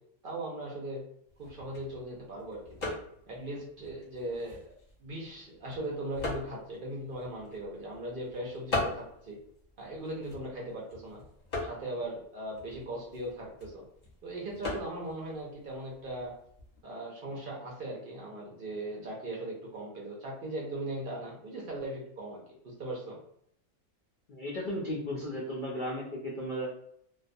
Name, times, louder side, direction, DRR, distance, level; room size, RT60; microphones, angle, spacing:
voice 1, 0.2-1.0 1.4-3.0 3.3-4.7 5.0-9.4 9.8-11.2 11.6-13.8 14.2-16.3 16.8-23.2, right 1 dB, 60° right, -3 dB, 0.5 m, -39 dB
sound 1, 1.3-16.8, left 2 dB, 40° left, 0.7 m, -42 dB
voice 2, 24.3-26.7, equal, 80° left, -4 dB, 0.4 m, -35 dB
2.3 x 2.2 x 2.5 m, 0.71 s
omnidirectional pair, 1.5 m